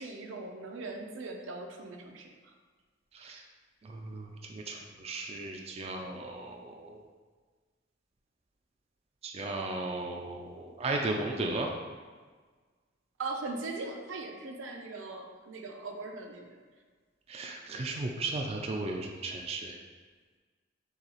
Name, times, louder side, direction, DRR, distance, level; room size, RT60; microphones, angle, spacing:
voice 1, 0.0-2.3 13.2-16.5, right 3 dB, 90° right, 2 dB, 0.6 m, -39 dB
voice 2, 3.8-7.0 9.2-11.7 17.3-19.8, right 2 dB, 35° right, 1 dB, 0.4 m, -35 dB
6.6 x 2.3 x 3.0 m, 1.5 s
head